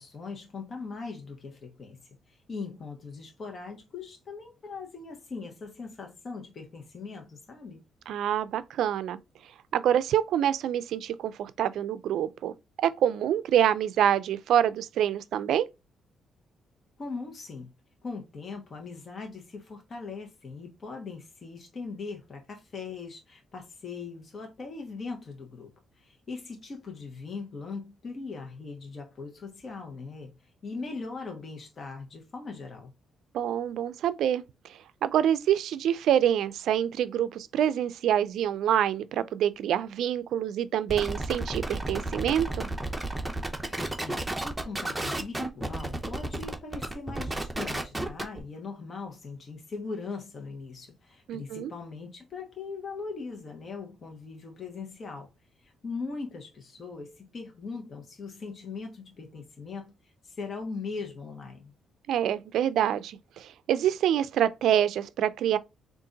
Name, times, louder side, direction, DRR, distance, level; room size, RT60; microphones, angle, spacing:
voice 1, 0.0-2.0 2.3-7.8 17.0-17.7 18.0-25.7 26.0-32.9 44.0-55.3 55.6-61.7, left 4 dB, 45° left, 1.0 m, -40 dB
voice 2, 8.1-9.2 9.7-12.5 12.8-15.7 33.3-34.4 35.0-42.7 51.3-51.7 62.1-65.6, right 10 dB, 75° right, 0.3 m, -26 dB
sound 1, 40.9-48.4, right 2 dB, 10° right, 0.8 m, -32 dB
3.8 x 2.5 x 3.8 m
cardioid pair, 90°, 0 cm